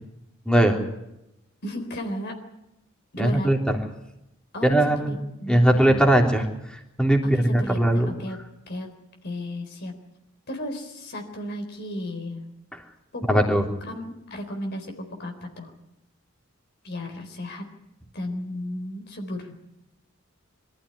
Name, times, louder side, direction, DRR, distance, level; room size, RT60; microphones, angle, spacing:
voice 1, 0.5-0.8 3.2-3.6 4.6-5.2 5.5-6.5 6.7-8.1 12.7-12.8 13.3-13.6, right 1 dB, 5° left, 2 dB, 3.5 m, -20 dB
voice 2, 1.6-2.4 3.1-3.5 4.5-6.1 7.4-8.4 8.7-8.9 9.2-9.9 10.5-12.4 13.1-13.4 13.8-14.9 15.2-15.7 16.8-17.6 18.1-19.5, left 1 dB, 55° left, 4 dB, 3.9 m, -34 dB
24.0 x 14.5 x 9.8 m, 0.88 s
head